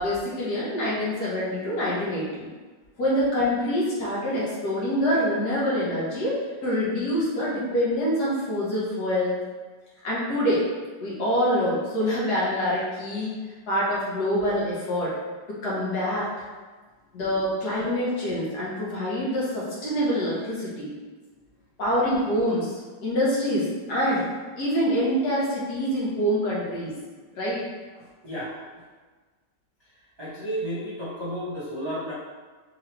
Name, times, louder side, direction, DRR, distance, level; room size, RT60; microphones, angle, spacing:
voice 1, 0.0-2.5 3.0-9.3 10.0-10.6 11.0-13.3 13.7-15.1 15.6-16.3 17.1-20.9 21.8-24.2 24.6-26.9 27.4-27.6, equal, 60° left, -7 dB, 1.5 m, -25 dB
voice 2, 28.0-28.6 30.2-32.1, equal, 35° right, -10 dB, 0.4 m, -32 dB
3.8 x 3.1 x 3.2 m, 1.4 s
omnidirectional pair, 2.0 m